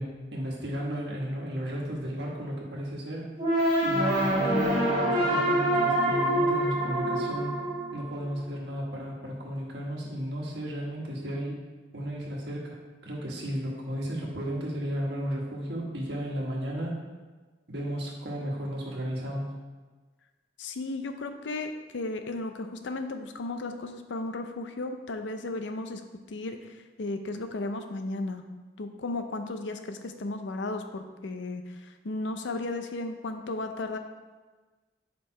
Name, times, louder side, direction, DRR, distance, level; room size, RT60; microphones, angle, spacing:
voice 1, 0.0-3.3 3.8-7.6 7.9-11.6 11.9-17.0 17.7-19.5, equal, 65° right, -2 dB, 1.3 m, -34 dB
sound 1, 3.4-8.4, right 1 dB, 30° right, 2.0 m, -25 dB
voice 2, 20.6-26.0 26.3-28.4 28.8-34.0, left 2 dB, 90° left, 7 dB, 0.5 m, -35 dB
5.2 x 4.5 x 4.3 m, 1.3 s
head